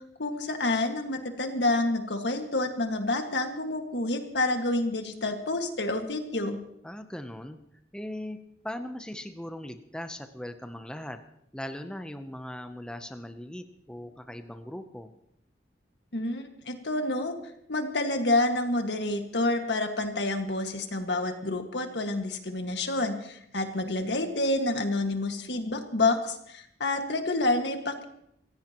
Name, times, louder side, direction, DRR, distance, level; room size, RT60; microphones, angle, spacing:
voice 1, 0.2-6.6 16.1-17.4 17.7-28.0, left 2 dB, 75° left, 5 dB, 1.8 m, -28 dB
voice 2, 6.8-7.6 7.9-11.2 11.5-15.1, left 1 dB, 5° left, 7 dB, 0.7 m, -39 dB
25.0 x 16.5 x 3.0 m, 0.73 s
head